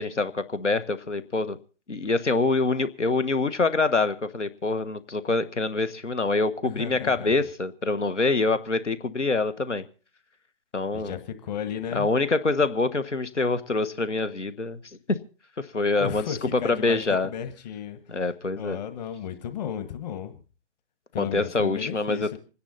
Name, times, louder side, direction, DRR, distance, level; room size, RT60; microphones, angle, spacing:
voice 1, 0.0-1.6 1.9-9.8 10.7-11.1 11.9-15.2 15.6-17.3 18.1-18.8 21.2-22.4, left 3 dB, 85° left, 13 dB, 1.5 m, -25 dB
voice 2, 6.6-7.5 10.9-12.1 16.0-18.0 18.6-20.4 21.1-22.4, left 8 dB, 35° left, 8 dB, 1.7 m, -34 dB
26.5 x 10.0 x 4.1 m, 0.36 s
figure-of-eight pair, 140°, 35 cm